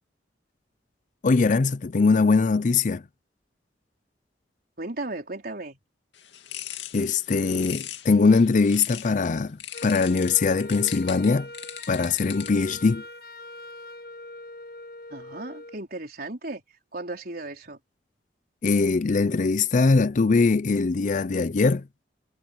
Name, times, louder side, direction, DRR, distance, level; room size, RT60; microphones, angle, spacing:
voice 1, 1.2-3.0 6.9-11.5 11.9-13.0 18.6-21.9, left 4 dB, 45° left, 0.5 m, -21 dB
voice 2, 4.8-5.8 15.1-16.6 16.9-17.8, right 2 dB, 55° right, 4.4 m, -35 dB
sound 1, 6.1-9.2 9.6-12.8, left 11 dB, 75° left, 2.4 m, -40 dB
Wind instrument woodwind instrument, 9.7-15.8, left 2 dB, 60° left, 1.6 m, -42 dB
head